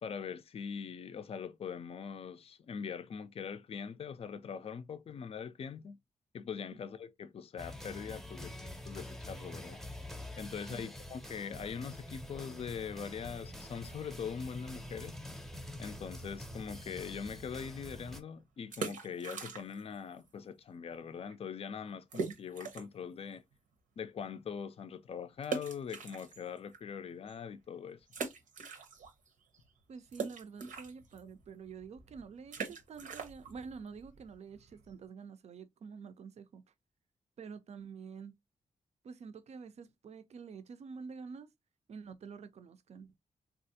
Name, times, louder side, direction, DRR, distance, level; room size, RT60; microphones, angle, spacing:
voice 1, 0.0-6.0 6.3-9.8 10.4-15.2 15.8-23.4 24.0-28.0, left 6 dB, 50° left, 0.4 m, -42 dB
sound 1, 7.6-18.2, left 1 dB, ahead, 0.7 m, -46 dB
sound 2, 18.6-20.0 20.2-20.3 20.9-21.0 21.3-21.4 22.1-23.0 23.5-23.6 25.4-26.8 27.3-27.4 28.1-29.3 29.5-35.1, right 5 dB, 90° right, 0.8 m, -42 dB
voice 2, 29.9-36.6 37.4-38.4 39.0-41.5 41.9-43.1, right 5 dB, 55° right, 0.4 m, -48 dB
3.3 x 2.4 x 2.7 m
cardioid pair, 85°, 13 cm